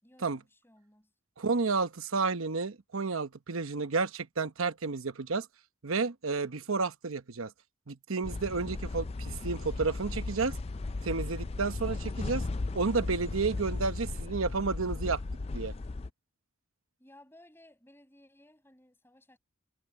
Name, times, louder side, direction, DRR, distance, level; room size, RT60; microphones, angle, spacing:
voice 1, 0.0-1.1 17.0-19.4, left 1 dB, 10° left, 6.8 m, -59 dB
voice 2, 1.4-5.5 5.8-7.5 7.9-10.5 11.0-12.4 12.7-15.2 15.5-15.7, right 4 dB, 85° right, 1.0 m, -31 dB
sound 1, 8.2-16.1, left 3 dB, 30° left, 0.4 m, -36 dB
head